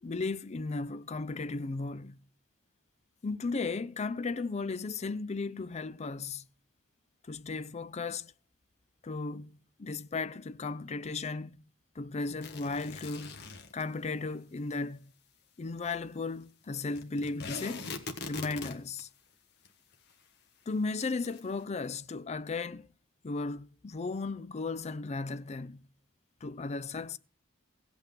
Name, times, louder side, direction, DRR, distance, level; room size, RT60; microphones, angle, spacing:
voice 1, 0.0-2.2 3.2-6.5 7.3-8.3 9.0-11.6 12.0-13.4 13.7-15.1 15.6-17.9 18.2-19.1 20.7-22.9 23.2-25.9 26.4-27.2, left 3 dB, 35° left, 0.5 m, -35 dB
sound 1, 12.4-13.8 17.0-19.0 19.6-19.7 19.9-20.0 21.0-21.4, left 3 dB, 55° left, 1.4 m, -41 dB
16.0 x 8.4 x 5.2 m
head